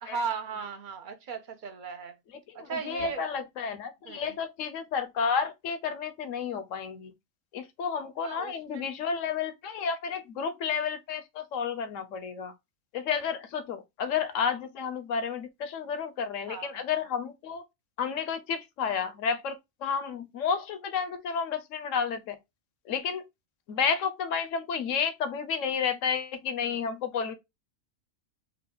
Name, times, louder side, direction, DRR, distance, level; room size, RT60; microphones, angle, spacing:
voice 1, 0.0-2.2 2.5-3.2 4.1-4.3 8.2-8.9 16.5-16.7 26.6-26.8, right 5 dB, 50° right, 0.7 m, -37 dB
voice 2, 2.6-7.1 7.5-12.5 12.9-17.6 18.0-22.4 22.9-23.2 23.7-27.3, left 6 dB, 75° left, 1.0 m, -31 dB
3.9 x 2.4 x 3.4 m
omnidirectional pair, 1.4 m